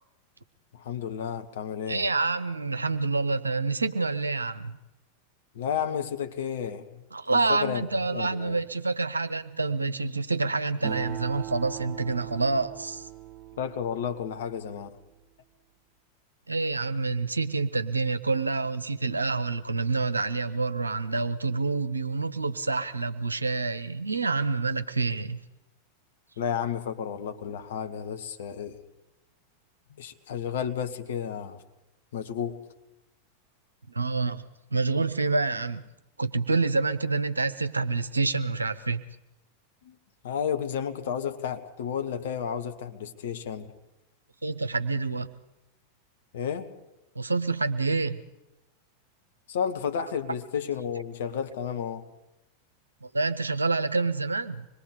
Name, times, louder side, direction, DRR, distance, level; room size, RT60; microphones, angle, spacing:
voice 1, 0.7-2.1 5.5-7.0 7.3-8.6 13.6-14.9 26.4-28.8 30.0-31.6 32.1-32.6 39.8-39.9 40.2-43.7 46.3-46.7 49.5-52.1, left 8 dB, 60° left, 1.6 m, -32 dB
voice 2, 1.9-4.8 7.1-13.1 16.5-25.4 33.9-34.4 34.7-35.8 36.2-39.0 44.4-45.3 47.1-48.2 53.0-54.7, right 3 dB, 80° right, 0.9 m, -27 dB
Acoustic guitar, 10.8-14.6, right 13 dB, 35° right, 4.8 m, -40 dB
25.5 x 21.0 x 5.1 m
figure-of-eight pair, 90°, 0 cm